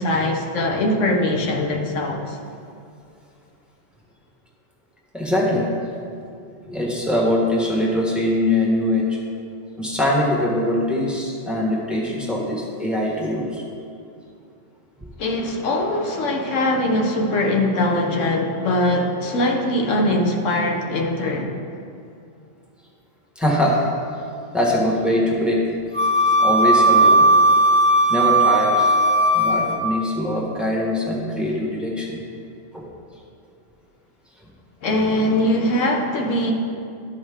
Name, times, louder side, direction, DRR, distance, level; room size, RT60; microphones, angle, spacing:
voice 1, 0.0-2.4 15.2-21.5 34.8-36.5, left 1 dB, 90° left, 1 dB, 1.3 m, -21 dB
voice 2, 5.1-5.7 6.6-9.2 9.8-13.6 23.3-23.9 24.5-25.6 26.4-27.3 28.1-29.0 29.3-32.2 32.7-32.9, left 1 dB, ahead, -4 dB, 1.3 m, -22 dB
Wind instrument woodwind instrument, 25.9-30.0, right 1 dB, 65° right, 1.0 m, -16 dB
12.5 x 5.4 x 3.6 m, 2.5 s
omnidirectional pair, 1.2 m